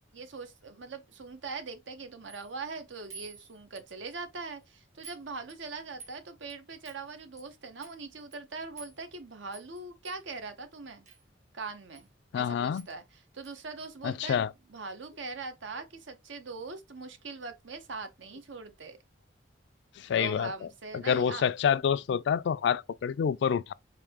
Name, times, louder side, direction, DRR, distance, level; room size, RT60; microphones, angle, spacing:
voice 1, 0.1-11.0 11.5-12.1 12.3-19.0 20.2-21.5, right 4 dB, 85° right, 0.9 m, -41 dB
sound 1, 2.3-2.5 3.1-4.2 4.4-4.6 5.0-5.2 5.5-6.2 6.5-6.6 6.9-7.0 7.4-7.5 7.8-8.0 8.3-8.4 8.8-9.2 9.5-9.8 10.0-10.2 11.1-11.2 11.9-12.1 12.3-12.4 12.8-13.0 13.4-13.6, right 5 dB, 40° right, 1.4 m, -50 dB
voice 2, 12.3-12.9 14.0-14.5 20.0-20.7 20.9-23.7, left 7 dB, 70° left, 0.3 m, -27 dB
4.8 x 2.7 x 3.5 m
head